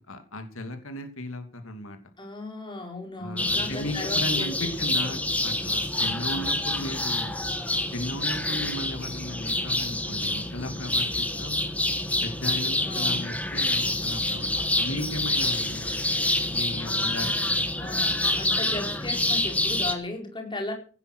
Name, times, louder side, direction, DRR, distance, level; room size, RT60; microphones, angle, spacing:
voice 1, 0.0-2.0 3.2-7.4 7.9-11.7 12.2-16.1 16.5-17.9, left 1 dB, 75° left, 6 dB, 2.8 m, -36 dB
voice 2, 2.2-4.8 12.8-13.3 17.0-17.1 17.7-20.7, left 2 dB, 20° left, 3 dB, 4.5 m, -36 dB
sound 1, 3.4-19.9, left 1 dB, 5° left, 2.0 m, -27 dB
17.5 x 9.9 x 6.3 m, 0.40 s
head